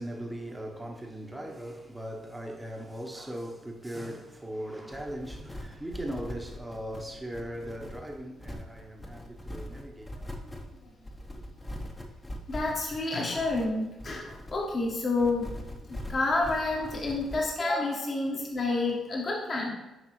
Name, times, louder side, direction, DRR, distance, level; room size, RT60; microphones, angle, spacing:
voice 1, 0.0-10.3, right 1 dB, 10° right, 1.0 m, -39 dB
sound 1, 4.9-17.5, left 1 dB, 15° left, 1.0 m, -42 dB
voice 2, 12.5-15.6 15.9-19.7, left 2 dB, 40° left, 1.4 m, -29 dB
7.7 x 5.2 x 3.2 m
cardioid pair, 90°, 0 cm